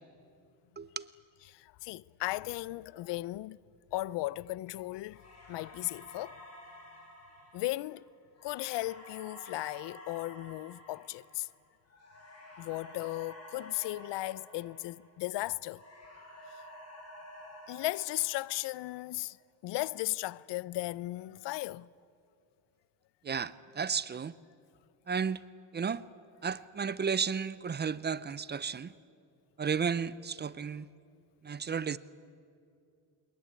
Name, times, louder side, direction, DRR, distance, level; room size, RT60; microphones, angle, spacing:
voice 1, 0.8-1.1 23.2-24.3 25.1-25.4 25.7-26.0 26.4-28.9 29.6-30.9 31.4-32.0, right 6 dB, 25° right, 0.5 m, -33 dB
voice 2, 1.5-3.6 3.9-6.4 7.5-8.0 8.4-11.5 12.6-15.8 17.7-19.4 19.6-21.9, left 18 dB, 80° left, 0.6 m, -36 dB
sound 1, 5.1-15.3 15.6-19.0, left 1 dB, 35° left, 7.9 m, -51 dB
22.0 x 21.5 x 9.8 m
cardioid pair, 125°, 42 cm